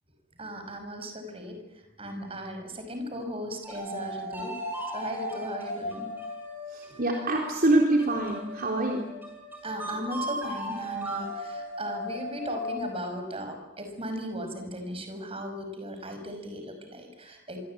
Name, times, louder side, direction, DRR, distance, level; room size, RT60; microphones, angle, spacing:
voice 1, 0.4-4.5 4.9-6.1 6.9-7.0 9.6-17.6, equal, 30° right, 6 dB, 5.6 m, -37 dB
sound 1, 3.6-13.1, equal, 10° right, 7.6 m, -37 dB
voice 2, 6.7-9.1, right 2 dB, 45° right, 0 dB, 3.8 m, -25 dB
26.0 x 24.5 x 8.8 m, 1.0 s
head